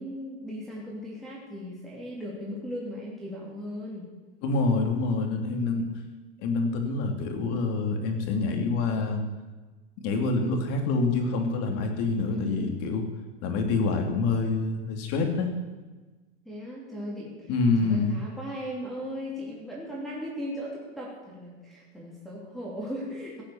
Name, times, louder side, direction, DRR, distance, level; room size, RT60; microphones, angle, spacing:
voice 1, 0.0-4.1 12.2-12.8 16.4-17.5 17.8-23.4, equal, ahead, -6 dB, 3.1 m, -37 dB
voice 2, 4.4-5.9 6.4-9.2 10.0-13.1 13.4-15.5 17.5-18.2, left 3 dB, 45° left, 3 dB, 2.9 m, -26 dB
17.0 x 8.6 x 7.2 m, 1.3 s
supercardioid pair, 145°, 32 cm